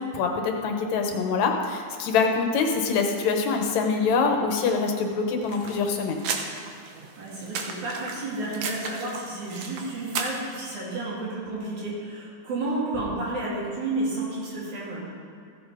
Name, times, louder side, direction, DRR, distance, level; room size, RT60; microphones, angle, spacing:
voice 1, 0.1-6.2, left 5 dB, 75° left, 3 dB, 2.4 m, -24 dB
sound 1, 5.4-10.5, right 5 dB, 65° right, 2.0 m, -35 dB
voice 2, 7.2-15.0, right 2 dB, 85° right, -6 dB, 4.3 m, -31 dB
15.5 x 7.6 x 5.0 m, 2.5 s
omnidirectional pair, 3.3 m